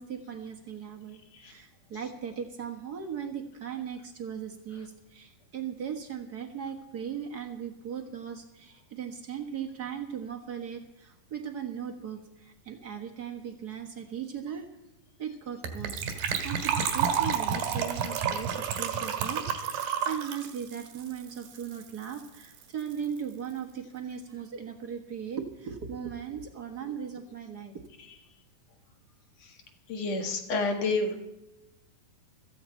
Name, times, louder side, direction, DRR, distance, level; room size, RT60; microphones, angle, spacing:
voice 1, 0.0-14.7 15.2-16.0 16.4-27.8, right 8 dB, 60° right, 3 dB, 1.0 m, -38 dB
Gurgling / Trickle dribble / Fill (with liquid), 15.6-21.9 22.1-22.2 22.4-22.6 22.9-23.0, right 7 dB, 85° right, 3.5 m, -30 dB
voice 2, 29.9-31.2, left 3 dB, 55° left, 3 dB, 2.5 m, -29 dB
16.5 x 14.5 x 4.4 m, 0.97 s
omnidirectional pair, 4.0 m